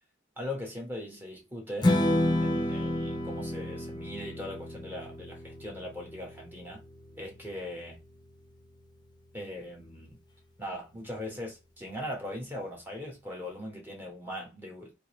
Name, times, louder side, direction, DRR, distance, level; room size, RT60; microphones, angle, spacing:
voice 1, 0.4-1.9 2.4-6.8 7.2-8.0 9.3-10.2 10.6-14.9, left 1 dB, 10° right, 1.3 m, -40 dB
Strum, 1.8-8.1, left 1 dB, 20° left, 0.7 m, -30 dB
3.7 x 2.9 x 3.1 m
head